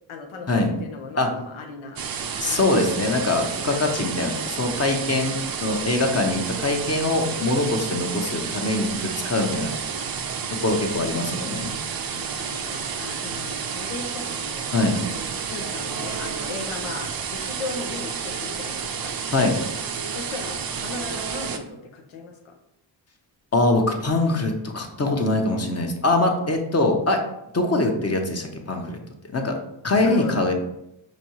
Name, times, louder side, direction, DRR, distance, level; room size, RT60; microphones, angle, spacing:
voice 1, 0.1-2.0 2.4-3.7 7.8-8.0 9.8-10.1 10.9-14.6 15.1-19.1 20.1-22.5 30.0-30.4, left 4 dB, 90° left, 3 dB, 0.8 m, -38 dB
sound 1, 2.0-21.6, right 6 dB, 50° right, 0.6 m, -30 dB
voice 2, 2.4-5.4 5.6-9.7 10.6-11.7 14.7-15.0 19.3-19.5 23.5-27.2 27.5-29.0 29.3-29.6 29.8-30.5, left 2 dB, 30° left, 3 dB, 0.8 m, -23 dB
5.1 x 2.7 x 3.0 m, 0.82 s
cardioid pair, 55°, 47 cm